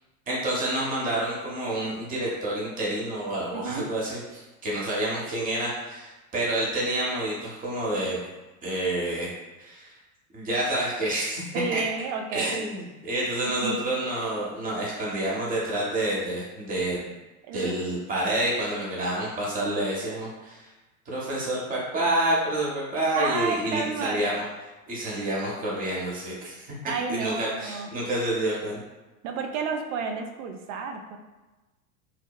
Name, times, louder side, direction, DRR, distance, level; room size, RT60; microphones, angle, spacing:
voice 1, 0.3-8.2 8.6-9.3 9.6-9.9 10.3-11.4 11.7-11.8 12.3-17.1 17.5-20.7 21.1-24.4 24.9-28.8, right 1 dB, 20° right, -5 dB, 0.7 m, -28 dB
voice 2, 3.5-3.9 11.5-12.7 13.5-13.8 17.5-17.8 23.2-24.5 26.8-27.9 29.2-31.2, right 5 dB, 60° right, 4 dB, 0.5 m, -31 dB
2.9 x 2.0 x 2.2 m, 1.1 s
hypercardioid pair, 90°, 42 cm